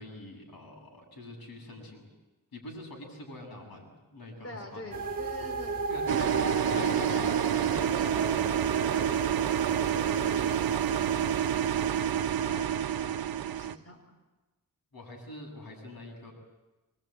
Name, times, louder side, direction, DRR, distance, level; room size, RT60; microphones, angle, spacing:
voice 1, 0.0-2.1 2.5-5.0 5.9-6.4 6.7-7.5 8.0-8.3 14.9-16.3, left 1 dB, 90° left, 2 dB, 7.6 m, -45 dB
voice 2, 4.4-5.8 6.0-6.3 6.7-7.3 7.6-8.4 8.9-11.7 12.4-13.2 13.4-14.0, left 2 dB, 40° left, 3 dB, 4.8 m, -44 dB
sound 1, 4.9-12.7, right 2 dB, 25° right, 2.6 m, -37 dB
sound 2, 6.1-13.8, right 10 dB, 85° right, 0.8 m, -28 dB
25.0 x 22.5 x 9.1 m, 1.1 s
wide cardioid pair, 140°, 35 cm